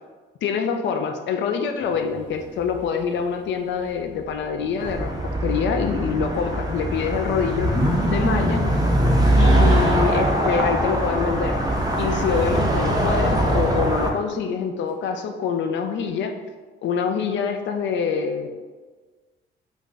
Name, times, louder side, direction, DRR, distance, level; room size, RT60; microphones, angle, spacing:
voice 1, 0.4-5.2 5.4-7.7 8.0-8.6 9.4-11.6 12.0-16.3 16.8-18.5, left 6 dB, 70° left, 6 dB, 0.4 m, -25 dB
sound 1, 1.8-3.3 3.5-10.6, left 1 dB, 25° left, 1.0 m, -31 dB
sound 2, 4.8-14.1, right 1 dB, 20° right, 0.5 m, -22 dB
2.5 x 2.3 x 3.8 m, 1.4 s
cardioid pair, 90°, 20 cm